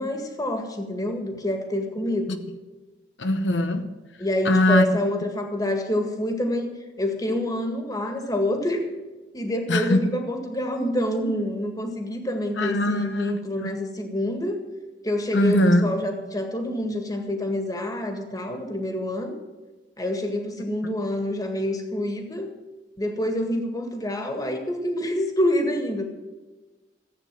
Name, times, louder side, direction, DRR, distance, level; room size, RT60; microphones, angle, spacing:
voice 1, 0.0-2.4 4.2-6.7 7.0-8.9 9.3-14.6 15.0-19.4 20.0-22.5 23.0-26.0, left 1 dB, 20° left, 1.9 m, -27 dB
voice 2, 3.2-3.8 4.5-4.9 9.7-10.1 12.6-13.7 15.3-15.9, left 1 dB, 80° left, 0.9 m, -21 dB
14.5 x 8.6 x 7.6 m
head